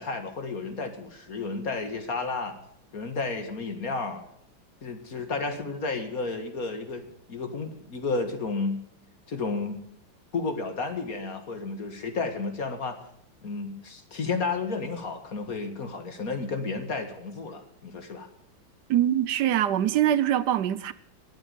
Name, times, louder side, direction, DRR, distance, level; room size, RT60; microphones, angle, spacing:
voice 1, 0.0-2.6 2.9-4.2 4.8-8.8 9.3-9.8 10.3-13.0 13.4-18.3, left 4 dB, 45° left, 2.0 m, -32 dB
voice 2, 18.9-20.9, right 11 dB, 70° right, 1.1 m, -23 dB
21.5 x 8.4 x 5.1 m
omnidirectional pair, 2.2 m